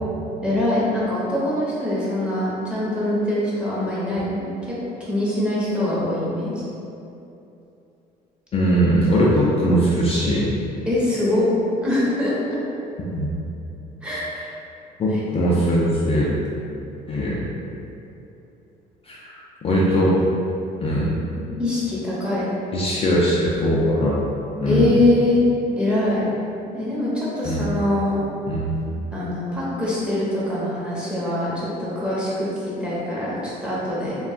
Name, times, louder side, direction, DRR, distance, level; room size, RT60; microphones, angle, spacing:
voice 1, 0.4-4.7 5.0-6.6 10.9-11.5 11.8-12.6 14.0-14.3 15.1-15.2 21.6-22.5 24.6-25.4 25.7-26.2 26.7-28.2 29.1-34.2, left 1 dB, 5° right, -9 dB, 0.9 m, -23 dB
voice 2, 8.5-10.5 13.1-13.3 15.0-16.3 17.1-17.4 19.1-20.2 20.8-21.1 22.7-24.2 24.6-25.0 27.4-27.6 28.5-28.8, equal, 35° left, -6 dB, 0.4 m, -20 dB
2.3 x 2.2 x 3.6 m, 2.8 s
cardioid pair, 110°, 17 cm